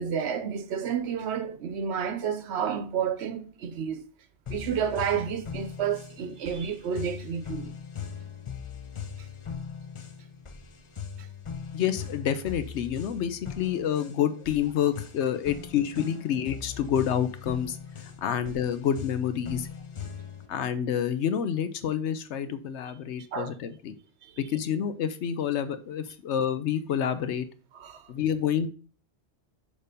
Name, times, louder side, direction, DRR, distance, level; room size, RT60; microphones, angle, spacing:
voice 1, 0.0-4.0 4.5-7.7 23.3-23.5 24.2-24.3 27.7-28.1, right 7 dB, 75° right, 0.9 m, -30 dB
sound 1, 4.5-20.5, left 7 dB, 35° left, 0.6 m, -40 dB
voice 2, 11.7-17.8 18.2-19.7 20.5-23.9 24.4-27.5 28.1-28.7, left 9 dB, 80° left, 0.9 m, -28 dB
6.6 x 3.3 x 5.0 m
omnidirectional pair, 1.1 m